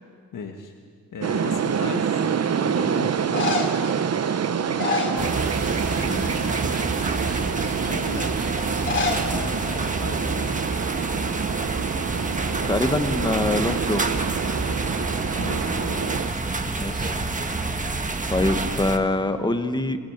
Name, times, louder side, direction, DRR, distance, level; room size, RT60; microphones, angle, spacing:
voice 1, 0.3-0.7 1.1-2.3 2.6-3.6 4.6-5.5 5.7-6.4 7.9-8.4 8.8-10.5 15.4-16.4 16.8-17.2, left 5 dB, 70° left, 3 dB, 1.7 m, -37 dB
sound 1, 1.2-16.3, right 7 dB, 50° right, 0.9 m, -27 dB
sound 2, 1.7-2.2 3.1-3.9 4.6-5.8 6.1-6.4 7.0-7.1 8.7-9.3 9.6-9.7 9.9-10.0 10.7-10.9 11.2-12.4 16.4-17.0, left 4 dB, 35° left, 2.6 m, -29 dB
sound 3, 5.2-19.0, right 3 dB, 25° right, 1.4 m, -28 dB
voice 2, 12.7-14.0 16.8-17.2 18.3-20.0, left 2 dB, 15° left, 9 dB, 1.2 m, -24 dB
27.0 x 17.5 x 8.8 m, 2.1 s
wide cardioid pair, 155°, 33 cm